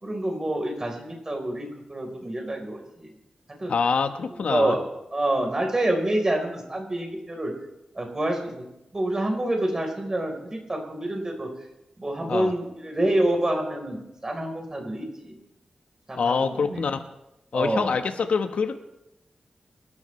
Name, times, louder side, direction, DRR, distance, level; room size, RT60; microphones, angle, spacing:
voice 1, 0.0-3.1 3.6-3.7 4.3-4.8 5.1-7.5 8.0-8.6 8.9-11.5 12.0-15.3 16.1-16.8 17.5-17.9, right 1 dB, 25° right, 2 dB, 4.1 m, -27 dB
voice 2, 3.7-4.8 12.3-12.5 16.2-17.0 17.5-18.8, left 5 dB, 80° left, 7 dB, 1.2 m, -25 dB
26.0 x 12.5 x 3.3 m, 0.88 s
wide cardioid pair, 100°, 2 cm